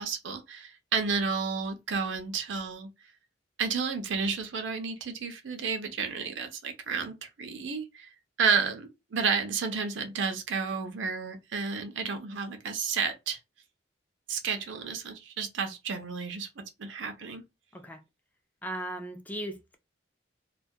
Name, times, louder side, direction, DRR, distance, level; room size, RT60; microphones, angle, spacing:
voice 1, 0.0-2.9 3.6-8.1 8.4-13.4 14.3-16.5 16.8-17.4, right 5 dB, 85° right, 0.5 m, -31 dB
voice 2, 18.6-19.8, right 1 dB, 10° left, 0.3 m, -37 dB
2.2 x 2.1 x 2.6 m
head